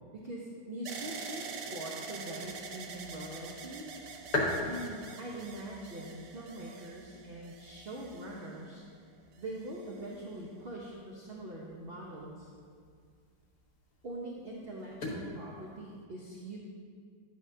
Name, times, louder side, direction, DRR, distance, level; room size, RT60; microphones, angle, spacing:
voice 1, 0.0-4.0 4.7-8.8 9.4-12.5 14.0-16.6, right 1 dB, 45° right, -3 dB, 0.9 m, -43 dB
sound 1, 0.9-8.9 9.6-10.2, right 5 dB, 80° right, 1.3 m, -46 dB
sound 2, 1.9-16.0, left 2 dB, 60° left, 1.8 m, -43 dB
10.5 x 7.8 x 2.7 m, 2.1 s
omnidirectional pair, 1.8 m